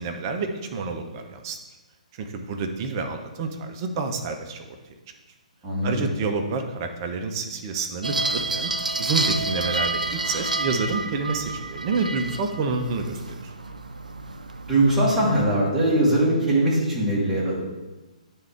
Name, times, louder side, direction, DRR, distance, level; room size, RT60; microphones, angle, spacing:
voice 1, 0.0-1.6 2.1-4.8 5.8-8.7 9.0-13.5, right 4 dB, 30° right, 5 dB, 0.6 m, -28 dB
voice 2, 5.6-6.1 14.7-17.6, right 1 dB, 10° right, -8 dB, 2.0 m, -21 dB
sound 1, 8.0-15.5, right 2 dB, 75° right, 0.5 m, -29 dB
9.2 x 3.6 x 4.5 m, 1.1 s
figure-of-eight pair, 125°, 4 cm